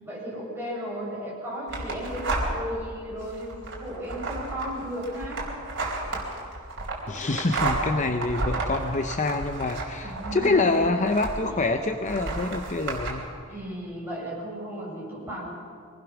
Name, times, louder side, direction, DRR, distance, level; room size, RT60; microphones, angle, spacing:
voice 1, 0.0-5.4 10.0-10.9 11.5-11.6 13.5-15.5, equal, 10° right, -5 dB, 6.9 m, -35 dB
sound 1, 1.7-2.8 3.2-11.6 12.1-13.1, right 2 dB, 55° right, 4.2 m, -32 dB
voice 2, 7.1-13.3, left 3 dB, 35° left, 6 dB, 0.8 m, -26 dB
24.0 x 19.0 x 6.1 m, 2.2 s
head